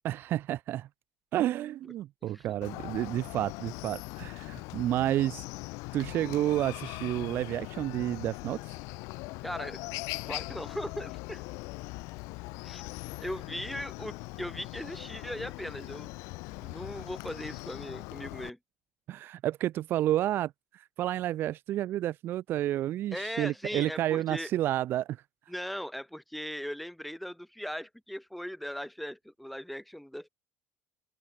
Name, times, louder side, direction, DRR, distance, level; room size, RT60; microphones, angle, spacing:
voice 1, 0.0-0.9 1.3-5.4 5.9-8.8 19.1-25.2, right 13 dB, 40° right, 0.8 m, -30 dB
voice 2, 2.2-2.5 9.4-11.4 12.6-12.9 13.2-16.1 16.5-18.6 23.1-24.5 25.5-30.3, equal, ahead, 1.6 m, -39 dB
Chicken rooster, 2.6-18.5, left 26 dB, 65° left, 1.6 m, -41 dB
open air
cardioid pair, 180°, 6 cm